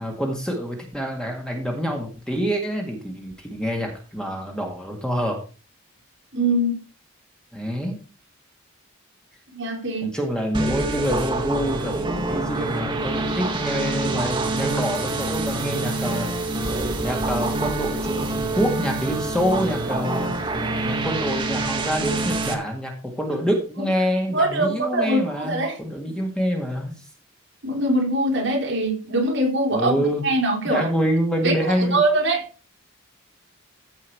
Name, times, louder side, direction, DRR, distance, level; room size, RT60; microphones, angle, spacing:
voice 1, 0.0-5.4 7.5-8.0 10.0-16.3 17.0-20.5 20.8-27.0 29.7-30.2 30.7-32.0, equal, 5° left, 1.9 m, -26 dB
voice 2, 6.3-6.8 9.5-10.1 24.3-25.8 27.6-30.9 31.4-31.5 31.8-32.4, right 1 dB, 55° right, 3.8 m, -22 dB
sound 1, 10.5-22.5, right 2 dB, 20° right, 1.7 m, -26 dB
14.5 x 5.6 x 4.7 m
head